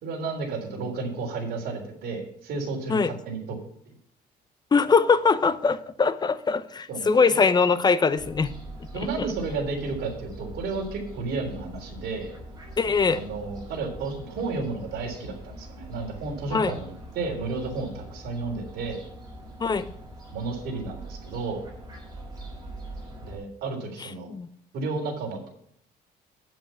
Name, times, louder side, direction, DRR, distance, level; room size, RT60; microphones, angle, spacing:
voice 1, 0.0-3.6 6.9-7.1 8.9-12.3 13.1-19.0 20.3-21.7 23.2-24.3 24.7-25.5, right 3 dB, 70° right, 1 dB, 3.6 m, -32 dB
voice 2, 4.7-8.5 12.8-13.2 16.5-16.7 19.6-19.9 24.3-24.5, left 5 dB, 25° left, 14 dB, 0.7 m, -22 dB
Fowl, 8.2-23.4, right 1 dB, 25° right, 5.3 m, -43 dB
8.8 x 7.7 x 5.6 m, 0.68 s
cardioid pair, 110°, 17 cm